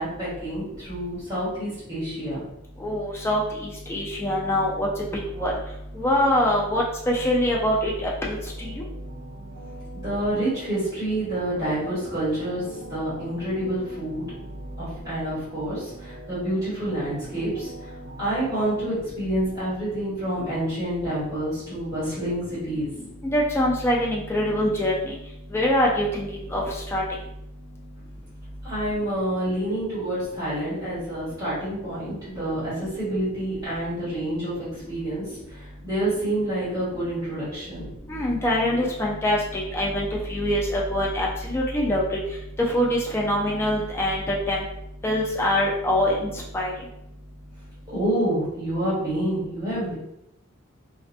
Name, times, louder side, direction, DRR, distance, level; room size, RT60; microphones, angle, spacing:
voice 1, 0.0-2.4 9.9-12.6 12.9-14.2 14.8-22.9 28.6-37.9 47.9-49.9, right 1 dB, 15° right, -12 dB, 1.4 m, -28 dB
voice 2, 2.8-4.9 5.4-5.5 6.0-8.8 23.2-25.1 25.5-26.6 26.9-27.0 38.1-42.0 42.7-44.6 45.0-46.7, left 1 dB, 10° left, -3 dB, 0.3 m, -24 dB
sound 1, 8.5-19.0, right 2 dB, 70° right, 0.6 m, -44 dB
2.4 x 2.1 x 2.6 m, 0.82 s
head